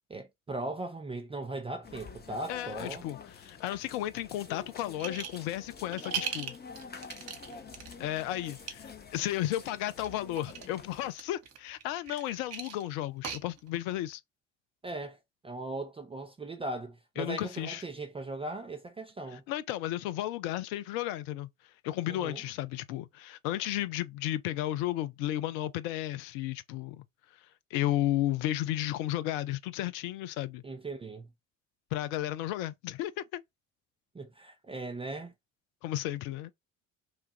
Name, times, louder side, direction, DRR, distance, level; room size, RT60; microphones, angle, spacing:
voice 1, 0.1-3.1 14.8-15.2 15.4-19.4 22.1-22.4 30.6-31.3 34.1-35.3, right 2 dB, 15° right, 0.5 m, -38 dB
sound 1, 1.8-11.1, left 5 dB, 25° left, 0.8 m, -47 dB
voice 2, 2.5-6.5 8.0-14.2 17.2-17.8 19.3-21.5 21.8-27.0 27.7-30.6 31.9-33.4 35.8-36.5, left 14 dB, 55° left, 0.5 m, -33 dB
sound 2, 5.0-5.5 5.8-7.9 8.5-8.7 9.9-10.7 11.1-13.9, right 8 dB, 40° right, 0.9 m, -39 dB
3.1 x 2.3 x 2.8 m
figure-of-eight pair, 55°, 40 cm